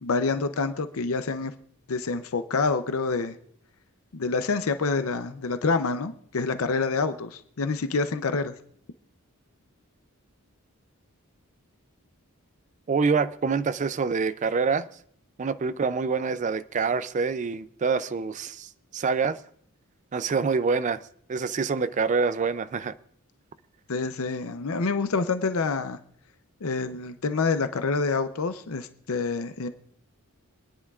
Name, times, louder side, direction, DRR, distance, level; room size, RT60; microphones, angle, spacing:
voice 1, 0.0-1.5 1.9-3.4 4.1-8.5 23.9-26.0 26.6-29.7, left 4 dB, 70° left, 0.6 m, -27 dB
voice 2, 12.9-14.9 15.4-19.4 20.1-21.0 21.3-22.9, right 5 dB, 35° right, 0.4 m, -26 dB
26.5 x 9.9 x 2.4 m
head